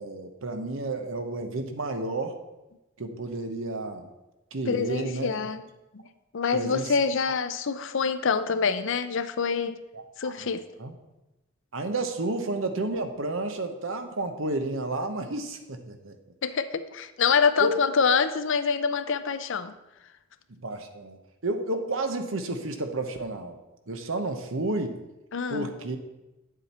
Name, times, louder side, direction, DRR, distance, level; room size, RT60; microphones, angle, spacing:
voice 1, 0.0-2.3 3.0-4.1 4.5-5.3 6.5-6.9 7.2-7.3 10.2-10.5 10.8-10.9 11.7-16.2 17.6-17.8 20.6-21.2 21.4-23.6 23.9-25.0 25.5-26.0, right 2 dB, 70° right, 7 dB, 1.0 m, -31 dB
voice 2, 4.7-5.6 5.9-6.0 6.3-9.8 10.2-10.7 16.4-19.7 25.3-25.8, left 5 dB, 65° left, 12 dB, 0.6 m, -26 dB
9.3 x 7.5 x 4.3 m, 1.0 s
head